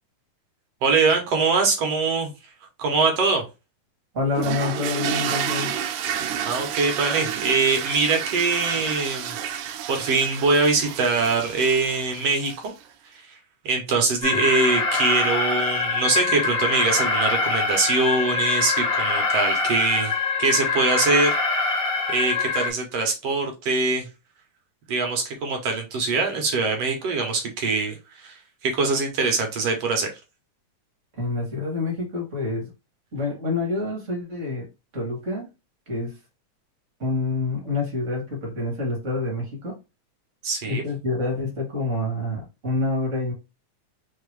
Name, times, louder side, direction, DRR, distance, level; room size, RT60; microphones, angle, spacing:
voice 1, 0.8-2.3 2.8-3.5 6.5-12.7 13.3-13.4 13.7-21.7 22.1-24.1 24.9-30.1 40.4-40.8, right 4 dB, 65° right, 1.8 m, -23 dB
voice 2, 4.1-5.8 14.3-14.4 31.1-32.7 33.1-35.5 35.9-36.2 37.0-39.8 40.6-43.3, left 3 dB, 45° right, 1.0 m, -27 dB
sound 1, 4.3-12.8, right 9 dB, 90° right, 2.1 m, -30 dB
Alarm, 14.2-22.7, left 4 dB, 70° left, 0.7 m, -24 dB
4.8 x 2.9 x 3.1 m
omnidirectional pair, 3.5 m